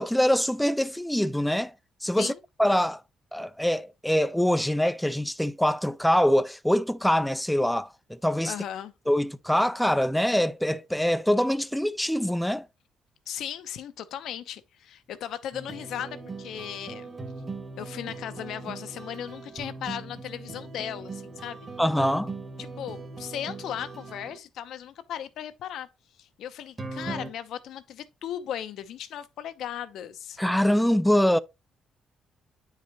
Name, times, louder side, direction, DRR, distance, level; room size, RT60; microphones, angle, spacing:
voice 1, 0.0-1.7 2.0-2.3 2.6-3.0 3.3-8.5 9.1-12.7 21.8-22.3 30.4-31.4, equal, 5° left, 0.4 m, -24 dB
voice 2, 8.5-8.9 13.3-17.1 17.8-21.7 22.6-25.9 26.2-30.4, left 10 dB, 80° left, 0.8 m, -37 dB
sound 1, 15.5-24.4 26.8-27.3, right 3 dB, 25° right, 1.4 m, -39 dB
9.1 x 4.9 x 2.9 m
cardioid pair, 90°, 0 cm